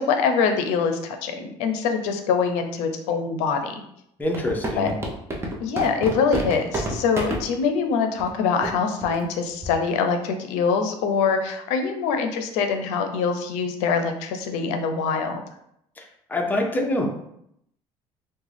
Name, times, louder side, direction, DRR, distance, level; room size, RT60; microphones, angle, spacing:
voice 1, 0.0-3.8 4.7-4.9 5.6-15.4, left 5 dB, 85° left, 6 dB, 0.5 m, -24 dB
voice 2, 4.2-5.0 16.0-16.1 16.3-17.1, left 1 dB, 15° left, 1 dB, 0.6 m, -25 dB
sound 1, 4.2-7.4 8.2-8.3 8.6-8.7 9.0-9.2 9.6-9.9, right 1 dB, 20° right, 0.7 m, -28 dB
3.5 x 2.2 x 3.3 m, 0.75 s
cardioid pair, 115°, 12 cm